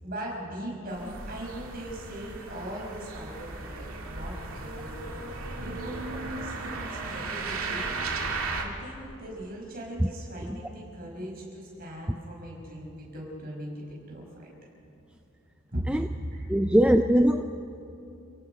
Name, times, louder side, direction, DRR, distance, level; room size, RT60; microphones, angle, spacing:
voice 1, 0.0-5.0 5.6-8.3 8.6-14.5 15.7-15.8 16.3-16.4, right 1 dB, 45° right, -3 dB, 5.9 m, -40 dB
sound 1, 0.9-8.6, right 3 dB, 75° right, 2.2 m, -35 dB
voice 2, 16.5-17.4, equal, 5° right, 6 dB, 0.4 m, -21 dB
30.0 x 17.0 x 5.1 m, 2.6 s
head